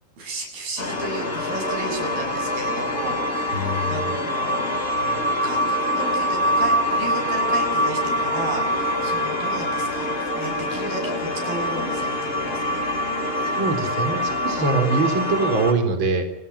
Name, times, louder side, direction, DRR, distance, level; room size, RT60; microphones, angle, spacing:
voice 1, 0.2-3.2 3.5-4.9 5.4-12.9, right 2 dB, 90° right, 3 dB, 9.5 m, -33 dB
sound 1, 0.8-15.7, left 1 dB, 25° left, 5.6 m, -24 dB
voice 2, 3.5-4.2 13.4-16.2, right 3 dB, 35° right, 6 dB, 4.2 m, -23 dB
29.0 x 20.5 x 9.7 m, 0.82 s
omnidirectional pair, 4.1 m